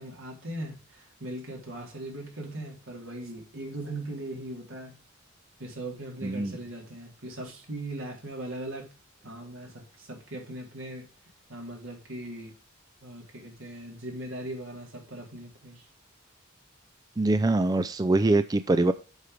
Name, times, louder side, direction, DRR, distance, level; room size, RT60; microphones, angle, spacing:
voice 1, 0.0-4.9 5.6-8.9 9.2-11.1 11.5-12.5 13.0-15.9, right 1 dB, 75° right, 3.9 m, -39 dB
voice 2, 6.2-6.5 17.2-18.9, right 2 dB, 20° right, 0.4 m, -23 dB
8.1 x 5.9 x 5.1 m
head